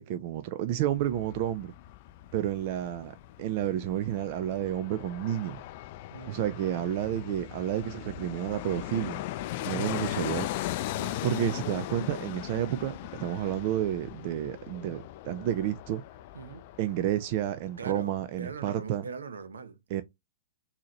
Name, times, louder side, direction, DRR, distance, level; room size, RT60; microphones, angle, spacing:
voice 1, 0.0-1.7 2.3-5.6 6.3-9.2 9.7-10.5 11.2-16.0 16.8-19.0 19.9-20.0, right 12 dB, 50° right, 0.4 m, -30 dB
Fixed-wing aircraft airplane, 0.7-17.7 18.0-18.1, left 15 dB, 50° left, 0.3 m, -39 dB
voice 2, 6.1-6.6 9.6-9.9 10.8-11.2 16.3-16.7 17.8-19.8, right 5 dB, 80° right, 0.7 m, -42 dB
3.9 x 2.8 x 2.9 m
hypercardioid pair, 110°, 0 cm